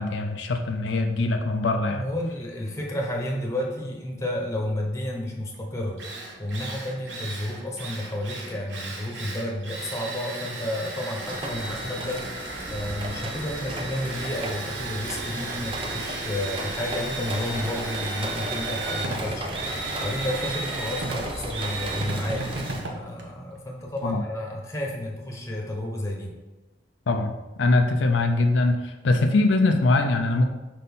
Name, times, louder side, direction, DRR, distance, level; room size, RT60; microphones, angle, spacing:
voice 1, 0.0-2.0 24.0-24.2 27.1-30.5, left 2 dB, 80° left, 5 dB, 0.5 m, -22 dB
voice 2, 1.9-6.0 6.4-12.3 12.7-19.6 20.0-22.5 22.8-26.3, left 1 dB, 15° left, 0 dB, 1.1 m, -31 dB
Drill, 5.5-5.6 6.0-24.1, right 2 dB, 75° right, 1.1 m, -35 dB
sound 1, 11.2-22.8, right 1 dB, 30° right, 0.7 m, -36 dB
5.3 x 4.2 x 5.4 m, 1.1 s
head